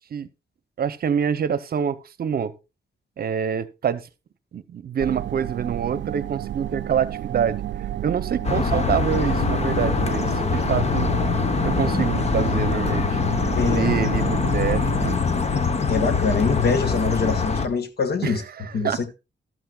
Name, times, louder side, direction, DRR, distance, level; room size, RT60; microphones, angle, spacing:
voice 1, 0.8-2.5 3.2-4.0 4.5-7.6 8.0-10.2 10.5-11.2 11.6-13.2 13.7-15.2 18.2-19.0, right 8 dB, 60° right, 0.8 m, -26 dB
sound 1, 5.0-15.2, right 12 dB, 85° right, 0.4 m, -31 dB
sound 2, 8.4-17.7, left 5 dB, 35° left, 0.9 m, -23 dB
voice 2, 13.5-13.9 15.9-18.4 18.7-19.1, left 4 dB, 65° left, 1.3 m, -24 dB
14.0 x 12.0 x 2.3 m
wide cardioid pair, 160°, 18 cm